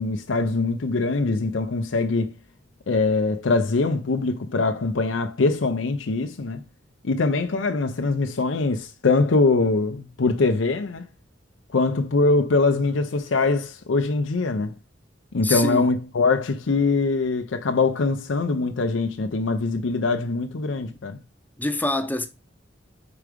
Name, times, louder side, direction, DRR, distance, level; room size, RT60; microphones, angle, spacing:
voice 1, 0.0-2.4 2.9-6.6 7.0-11.1 11.7-14.7 15.3-21.2, left 3 dB, 85° left, 0.6 m, -23 dB
voice 2, 15.4-15.9 21.6-22.3, left 1 dB, 10° left, 0.6 m, -25 dB
4.8 x 4.7 x 5.0 m
head